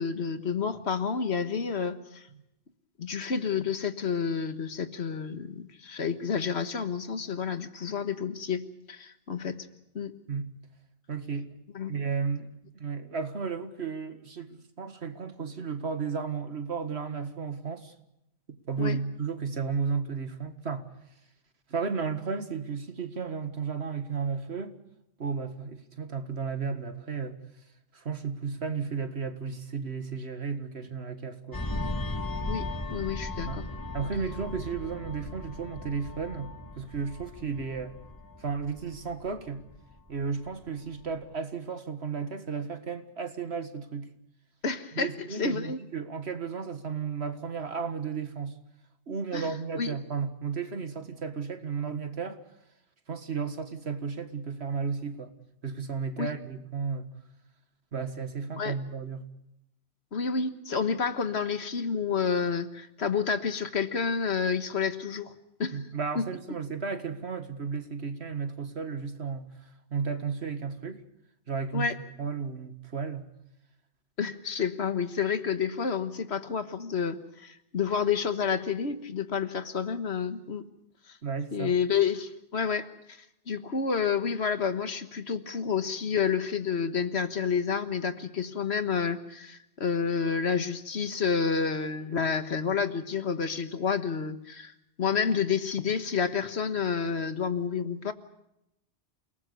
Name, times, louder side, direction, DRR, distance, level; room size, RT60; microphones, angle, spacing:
voice 1, 0.0-2.3 3.0-8.6 8.9-9.7 9.9-10.1 11.7-11.9 18.8-19.0 32.5-33.7 44.6-45.1 45.4-45.8 49.3-49.9 56.2-56.3 58.6-58.7 60.1-65.3 65.6-65.8 66.1-66.3 71.7-72.0 74.2-80.6 81.1-81.2 81.5-98.1, left 6 dB, 70° left, 1.6 m, -29 dB
voice 2, 11.1-11.5 11.9-12.5 12.7-17.9 18.7-20.9 21.7-24.7 25.2-27.4 27.9-31.6 33.5-33.6 33.9-36.5 36.8-37.9 38.4-39.6 40.1-44.1 44.9-48.6 49.1-52.4 53.1-55.3 55.6-57.1 57.9-59.2 65.7-71.0 71.5-71.9 72.2-73.2 81.2-81.7, right 5 dB, 70° right, 2.0 m, -33 dB
sound 1, 31.5-40.6 40.9-41.2, left 2 dB, 20° left, 1.7 m, -37 dB
28.5 x 19.0 x 6.8 m
omnidirectional pair, 1.1 m